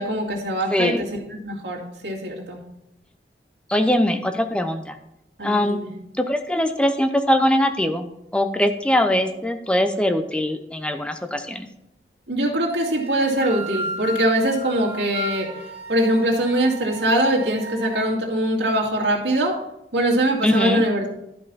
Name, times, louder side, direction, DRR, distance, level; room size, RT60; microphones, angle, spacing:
voice 1, 0.0-2.6 5.4-5.9 12.3-15.5 15.9-19.6 19.9-21.1, right 1 dB, 85° right, -2 dB, 2.2 m, -22 dB
voice 2, 0.7-1.0 3.7-4.9 5.4-5.9 6.2-8.1 8.3-11.7 20.4-20.8, left 1 dB, 5° left, 7 dB, 0.6 m, -21 dB
sound 1, 12.7-18.0, equal, 15° right, 1.1 m, -34 dB
12.5 x 5.4 x 4.1 m, 0.83 s
head